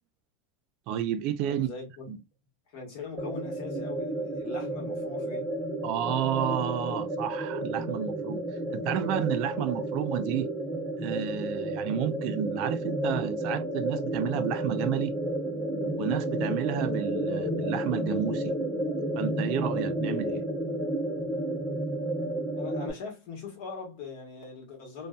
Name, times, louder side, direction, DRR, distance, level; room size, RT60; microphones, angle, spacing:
voice 1, 0.9-1.7 2.1-2.2 5.8-8.4 8.7-10.5 11.0-15.2 15.9-18.6 19.2-20.5, right 10 dB, 45° right, 0.3 m, -31 dB
voice 2, 1.4-2.1 2.7-5.5 22.6-25.1, left 4 dB, 50° left, 1.2 m, -41 dB
sound 1, 3.2-22.9, right 1 dB, ahead, 0.6 m, -31 dB
2.6 x 2.2 x 2.2 m
supercardioid pair, 160°, 0 cm